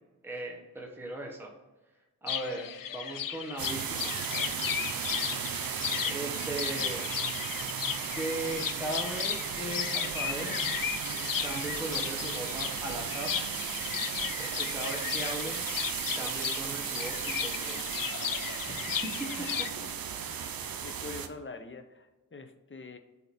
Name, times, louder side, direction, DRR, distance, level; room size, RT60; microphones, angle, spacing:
voice 1, 0.2-1.5 2.2-4.2 6.1-7.1 8.1-10.7 11.4-13.3 14.4-15.6 16.1-17.8 18.7-19.3 19.8-19.9 20.1-20.5, right 1 dB, 5° right, -1 dB, 1.1 m, -38 dB
sound 1, 2.3-19.7, left 9 dB, 70° left, 0.5 m, -35 dB
sound 2, 3.6-21.3, right 7 dB, 75° right, 0.6 m, -35 dB
voice 2, 19.1-19.9 20.8-23.0, left 4 dB, 35° left, 7 dB, 0.7 m, -45 dB
7.7 x 2.9 x 4.1 m, 1.2 s
cardioid pair, 60°, 35 cm